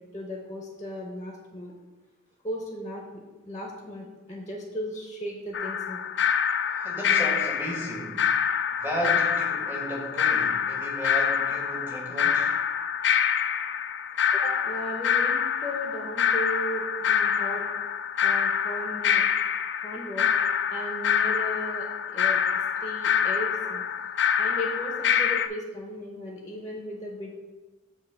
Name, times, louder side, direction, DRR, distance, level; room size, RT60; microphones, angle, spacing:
voice 1, 0.0-1.7 2.4-3.0 3.5-6.0 14.3-17.7 18.2-19.2 19.8-20.3 20.7-22.4 22.8-23.8 24.4-27.4, equal, 15° left, -1 dB, 0.7 m, -36 dB
sound 1, 5.5-25.5, left 8 dB, 60° left, 0.3 m, -26 dB
voice 2, 6.7-8.2 8.8-12.5, right 1 dB, 10° right, -2 dB, 1.2 m, -34 dB
7.3 x 2.8 x 5.8 m, 1.2 s
head